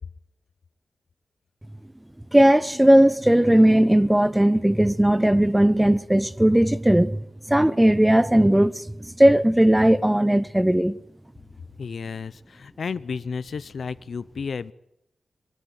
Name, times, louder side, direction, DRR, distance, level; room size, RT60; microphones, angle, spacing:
voice 1, 2.3-7.2 7.5-11.0, right 1 dB, 10° right, 0.7 m, -18 dB
voice 2, 11.8-14.7, left 5 dB, 65° left, 0.7 m, -32 dB
23.0 x 13.0 x 9.4 m
wide cardioid pair, 145°, 0 cm